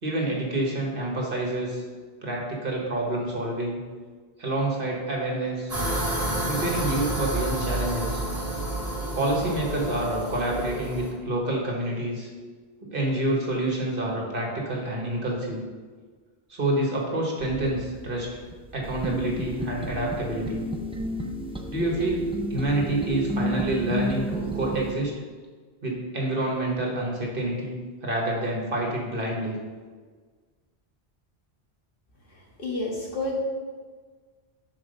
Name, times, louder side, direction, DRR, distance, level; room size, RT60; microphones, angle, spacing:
voice 1, 0.0-1.8 2.2-3.8 4.4-5.7 6.4-8.2 9.2-12.3 12.9-15.6 16.5-18.3 18.7-20.6 21.7-25.1 25.8-29.6, right 1 dB, 55° right, -2 dB, 1.6 m, -28 dB
sound 1, 5.7-11.1, right 1 dB, 35° right, 2.0 m, -29 dB
sound 2, 17.4-24.9, right 1 dB, 10° right, 0.4 m, -32 dB
voice 2, 32.3-33.4, left 2 dB, 55° left, -4 dB, 1.8 m, -31 dB
6.0 x 4.6 x 6.5 m, 1.5 s
omnidirectional pair, 1.1 m